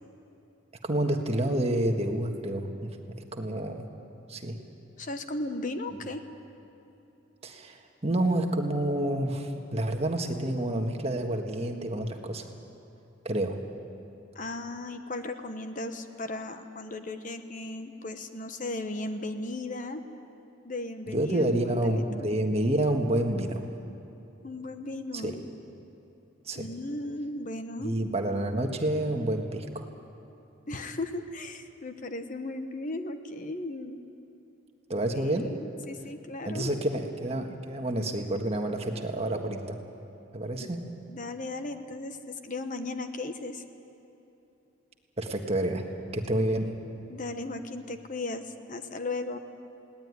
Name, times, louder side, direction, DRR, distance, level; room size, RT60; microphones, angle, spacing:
voice 1, 0.8-3.0 3.3-3.9 4.3-4.6 7.4-12.5 13.2-13.6 21.1-23.6 25.1-25.4 26.4-26.7 27.8-29.9 34.9-35.6 36.4-39.8 40.3-40.8 45.2-45.8 46.1-46.7, right 1 dB, 30° right, 4 dB, 1.6 m, -29 dB
voice 2, 5.0-6.2 14.3-20.0 20.6-21.6 21.8-22.3 24.4-25.4 26.5-27.9 30.7-34.0 35.1-36.9 40.6-40.7 41.1-43.6 47.1-49.4, left 2 dB, 40° left, 8 dB, 1.1 m, -36 dB
21.0 x 18.0 x 9.6 m, 3.0 s
head